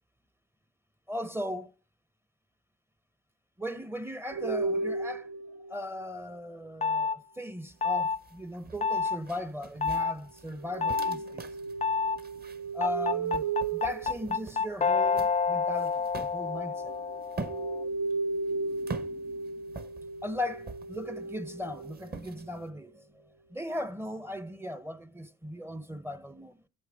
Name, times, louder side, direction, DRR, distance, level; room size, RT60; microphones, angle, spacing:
voice 1, 1.1-1.7 3.6-5.3 5.7-11.5 12.7-13.4 13.7-16.9 20.2-23.2 23.5-26.6, left 1 dB, 10° right, 0.7 m, -37 dB
sound 1, 4.3-6.2 10.6-15.0 16.4-22.6, right 3 dB, 70° right, 0.9 m, -35 dB
sound 2, 6.8-7.2 7.8-8.2 8.8-9.2 9.8-10.1 10.8-11.2 11.8-12.2 12.8-17.9, left 5 dB, 25° left, 0.4 m, -28 dB
sound 3, 7.7-22.7, right 4 dB, 30° right, 1.0 m, -46 dB
8.5 x 8.1 x 3.5 m
cardioid pair, 90°, 30 cm